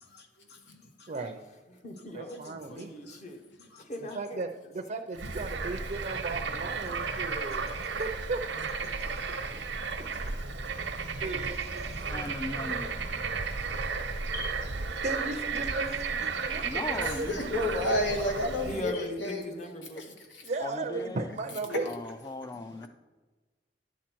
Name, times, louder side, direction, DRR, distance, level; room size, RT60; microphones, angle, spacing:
voice 1, 0.0-1.1 2.0-2.5 3.0-3.2 3.7-3.8 7.5-8.0 8.5-9.2 10.3-10.7 11.8-12.3 14.3-14.6 14.9-15.0 22.5-22.6, left 2 dB, 65° left, 1.1 m, -49 dB
voice 2, 1.1-1.4 2.1-2.9 4.1-8.4 10.0-10.3 10.9-12.0 15.0-18.1 20.4-21.9, right 3 dB, 45° right, 0.6 m, -36 dB
voice 3, 1.7-3.4 3.8-4.5 18.6-20.1 21.6-21.9, left 1 dB, 40° left, 1.0 m, -40 dB
Bird / Frog, 5.1-18.9, right 4 dB, 85° right, 0.9 m, -34 dB
voice 4, 12.1-13.0 16.6-17.4 20.6-21.3 21.8-22.9, left 2 dB, 20° left, 0.4 m, -38 dB
voice 5, 17.0-19.5 20.0-20.4 21.7-21.8, left 1 dB, 85° left, 1.6 m, -31 dB
11.0 x 7.3 x 4.5 m
head